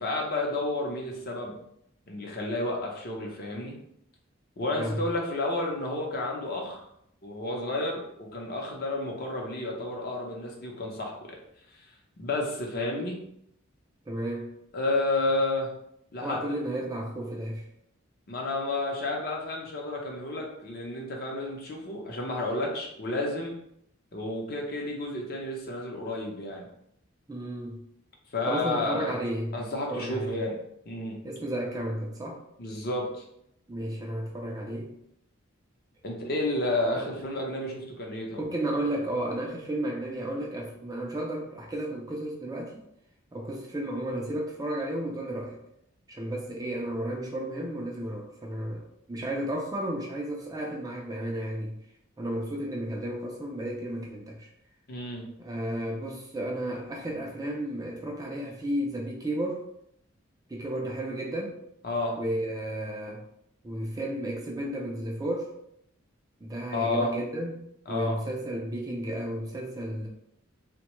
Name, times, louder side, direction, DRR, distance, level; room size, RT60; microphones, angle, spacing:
voice 1, 0.0-1.6 2.1-3.8 4.6-6.8 7.2-11.4 12.2-13.2 14.7-15.7 16.1-16.6 18.3-23.5 24.1-26.7 28.3-29.2 29.5-30.6 30.9-31.2 32.6-33.2 36.0-38.4 54.9-55.3 61.8-62.2 66.7-67.1 67.9-68.1, left 2 dB, 45° left, 0 dB, 0.6 m, -31 dB
voice 2, 14.1-14.5 16.2-17.7 27.3-27.8 28.5-29.6 29.9-30.4 31.2-32.4 33.7-34.9 36.9-37.1 38.4-42.8 43.3-45.6 46.1-51.8 52.2-54.5 55.4-59.7 60.5-61.6 62.2-63.2 63.6-65.5 66.4-70.1, right 1 dB, 15° right, 0 dB, 0.3 m, -33 dB
3.5 x 2.2 x 3.0 m, 0.75 s
head